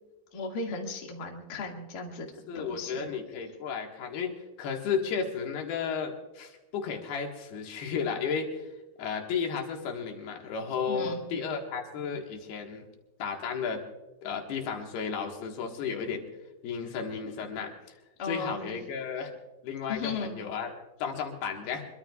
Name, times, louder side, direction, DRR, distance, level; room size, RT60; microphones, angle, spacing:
voice 1, 0.3-3.1 10.9-11.2 18.2-18.7 19.9-20.3, left 3 dB, 35° left, 0 dB, 2.0 m, -36 dB
voice 2, 2.5-4.3 4.6-8.7 9.0-12.9 13.2-13.8 14.2-16.2 16.6-17.7 18.2-19.3 19.6-20.7 21.0-21.9, left 6 dB, 80° left, 1 dB, 3.6 m, -33 dB
25.5 x 22.5 x 2.4 m, 1.1 s
omnidirectional pair, 4.4 m